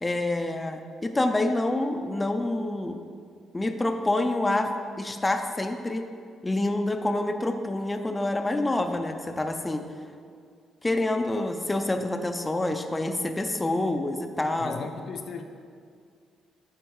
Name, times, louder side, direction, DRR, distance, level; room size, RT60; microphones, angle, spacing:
voice 1, 0.0-3.0 3.5-4.7 5.0-6.1 6.4-9.8 10.8-14.9, left 2 dB, 15° left, 5 dB, 0.5 m, -27 dB
voice 2, 14.6-15.4, left 5 dB, 60° left, 6 dB, 0.5 m, -36 dB
7.8 x 4.4 x 4.7 m, 2.2 s
cardioid pair, 90°, 0 cm